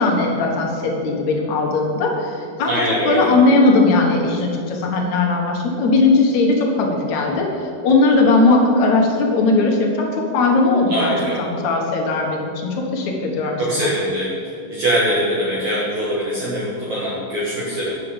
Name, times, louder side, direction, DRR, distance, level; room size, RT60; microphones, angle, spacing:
voice 1, 0.0-2.8 3.1-13.9, left 3 dB, 60° left, 0 dB, 2.3 m, -18 dB
voice 2, 2.7-3.3 10.9-11.4 13.6-14.4 14.7-18.0, equal, 55° right, -7 dB, 2.7 m, -22 dB
9.1 x 6.7 x 7.1 m, 2.5 s
omnidirectional pair, 4.4 m